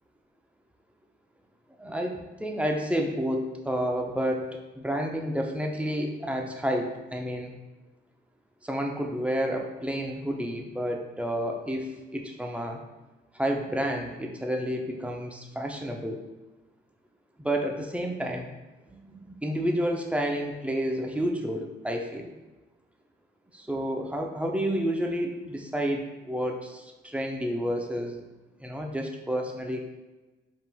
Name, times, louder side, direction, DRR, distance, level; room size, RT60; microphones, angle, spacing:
voice 1, 1.8-7.5 8.6-12.8 13.3-16.2 17.4-18.5 18.9-22.3 23.5-28.2 28.6-29.8, equal, 5° right, 2 dB, 0.6 m, -30 dB
5.4 x 3.7 x 2.3 m, 1.1 s
cardioid pair, 90°, 20 cm